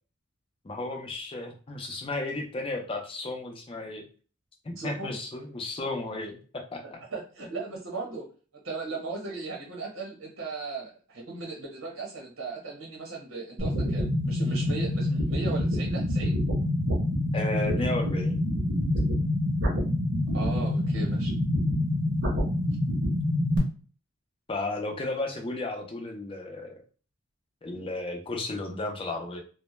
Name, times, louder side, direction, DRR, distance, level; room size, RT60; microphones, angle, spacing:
voice 1, 0.6-4.1 4.6-7.0 17.3-18.4 24.5-26.8 27.6-29.4, left 2 dB, 25° left, 2 dB, 0.4 m, -33 dB
voice 2, 4.8-5.1 6.8-8.3 8.6-16.4 20.3-21.3, right 3 dB, 80° right, -1 dB, 1.0 m, -37 dB
sound 1, 13.6-23.6, left 1 dB, 60° right, 0.7 m, -26 dB
2.1 x 2.1 x 3.0 m, 0.39 s
head